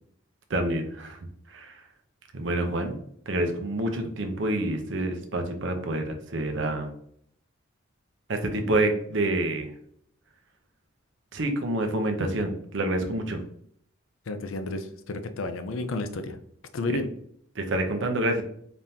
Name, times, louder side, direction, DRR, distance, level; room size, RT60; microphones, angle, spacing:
voice 1, 0.5-1.2 1.5-1.8 2.3-3.0 3.3-6.9 8.3-9.7 11.3-13.4 17.5-18.4, right 1 dB, 65° right, 5 dB, 0.7 m, -27 dB
voice 2, 14.3-16.4 16.7-17.1, left 2 dB, 80° left, 8 dB, 0.5 m, -31 dB
4.0 x 3.6 x 2.8 m, 0.66 s
head